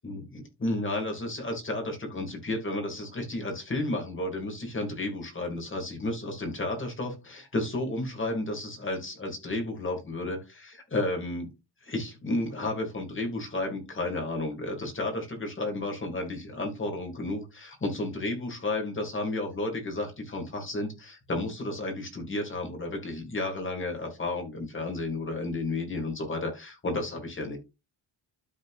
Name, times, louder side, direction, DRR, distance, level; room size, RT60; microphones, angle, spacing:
voice 1, 0.0-11.5 11.8-27.6, left 2 dB, 25° left, 2 dB, 2.8 m, -32 dB
12.5 x 4.3 x 2.7 m, 0.26 s
cardioid pair, 120°, 45 cm